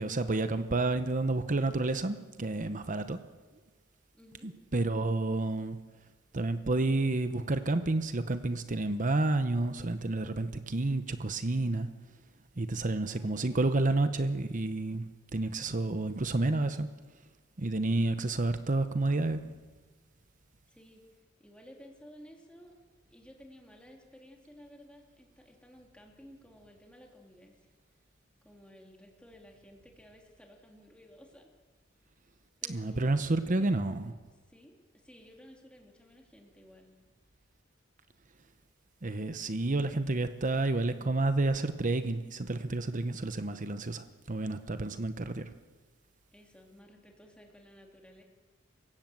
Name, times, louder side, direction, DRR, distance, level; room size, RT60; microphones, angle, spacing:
voice 1, 0.0-3.2 4.4-5.8 6.3-11.9 12.6-16.9 17.6-19.4 32.7-34.1 39.0-45.5, right 2 dB, 40° right, 10 dB, 0.9 m, -30 dB
voice 2, 4.1-4.5 13.1-13.7 20.7-21.0 21.4-22.7 23.1-27.6 28.4-31.5 32.6-33.7 34.5-36.9 46.3-48.2, equal, 5° left, 1 dB, 2.8 m, -55 dB
27.0 x 16.5 x 7.6 m, 1.3 s
head